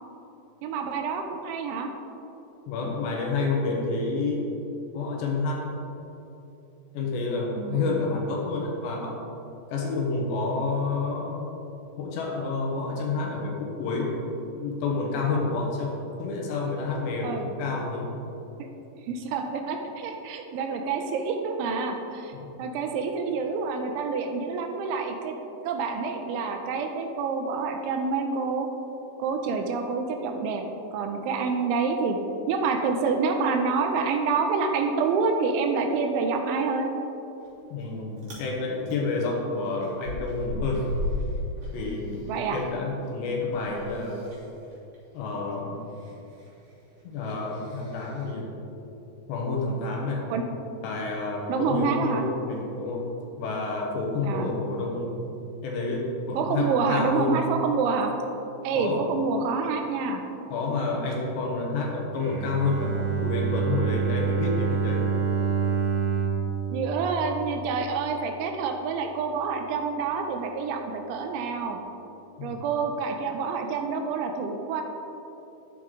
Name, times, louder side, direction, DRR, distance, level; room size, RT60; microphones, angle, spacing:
voice 1, 0.6-1.9 7.6-7.9 17.2-17.5 19.0-22.3 22.6-25.4 25.6-28.7 29.2-30.6 30.9-32.2 32.5-36.9 42.3-42.6 50.3-50.4 51.5-52.2 54.2-54.5 56.4-58.1 58.6-60.2 66.7-71.8 72.4-74.8, right 4 dB, 80° right, 4 dB, 3.0 m, -27 dB
voice 2, 2.7-4.4 4.9-5.7 6.9-9.2 9.7-11.5 12.0-14.2 14.6-18.1 22.3-22.5 37.7-40.9 41.7-44.3 45.1-45.8 47.0-48.5 49.3-50.2 50.8-53.1 53.4-55.2 55.6-57.3 58.7-59.1 60.5-65.1 72.4-72.6, left 3 dB, 70° left, -1 dB, 3.4 m, -29 dB
Chewing mastication, 37.4-37.9 38.2-38.5 38.9-42.6 42.9-48.3, left 1 dB, 40° right, 3.5 m, -36 dB
Bowed string instrument, 62.2-68.1, right 6 dB, 65° right, 2.8 m, -27 dB
11.5 x 10.5 x 3.9 m, 2.9 s
omnidirectional pair, 5.6 m